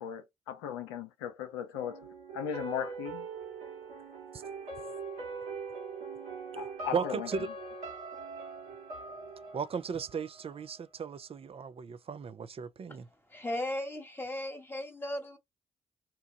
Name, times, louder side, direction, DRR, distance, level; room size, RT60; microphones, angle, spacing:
voice 1, 0.0-2.1 2.3-3.3 6.5-7.3, left 8 dB, 90° left, 0.5 m, -37 dB
sound 1, 1.7-10.7 11.0-11.1, right 4 dB, 80° right, 1.5 m, -42 dB
voice 2, 6.9-7.5 9.5-13.1, right 6 dB, 45° right, 0.5 m, -36 dB
voice 3, 13.3-15.4, left 1 dB, 15° left, 1.3 m, -36 dB
2.9 x 2.3 x 3.9 m
hypercardioid pair, 40°, 14 cm